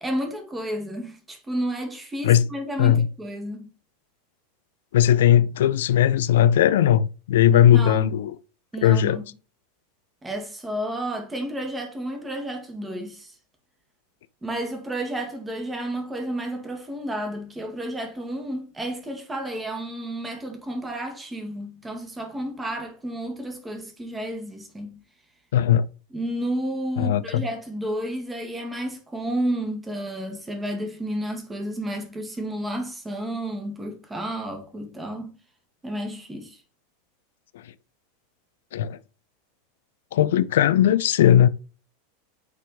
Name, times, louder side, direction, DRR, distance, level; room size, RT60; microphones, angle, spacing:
voice 1, 0.0-3.7 7.5-8.1 8.7-9.2 10.2-13.3 14.4-25.0 26.1-35.3 35.8-36.6, right 1 dB, 10° right, 1.8 m, -31 dB
voice 2, 4.9-8.4 8.8-9.2 25.5-25.9 27.0-27.4 38.7-39.0 40.1-41.5, left 10 dB, 60° left, 0.4 m, -18 dB
9.5 x 4.2 x 3.2 m
figure-of-eight pair, 85°, 0 cm